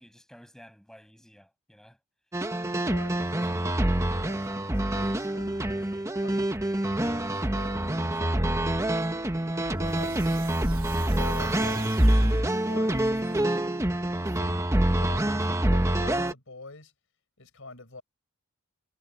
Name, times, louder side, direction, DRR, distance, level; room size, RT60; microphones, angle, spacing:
voice 1, 0.0-2.0 6.4-6.5, equal, ahead, 7.9 m, -53 dB
sound 1, 2.3-16.3, right 1 dB, 15° right, 1.2 m, -26 dB
voice 2, 2.8-5.6 6.2-6.5 7.5-9.2 9.8-10.3 11.0-12.1 12.7-13.1 14.2-16.9 17.4-18.0, left 3 dB, 65° left, 5.0 m, -46 dB
sound 2, 3.9-4.4 5.4-6.0 6.9-7.5 8.4-9.0 9.6-14.0, right 3 dB, 80° right, 2.8 m, -45 dB
head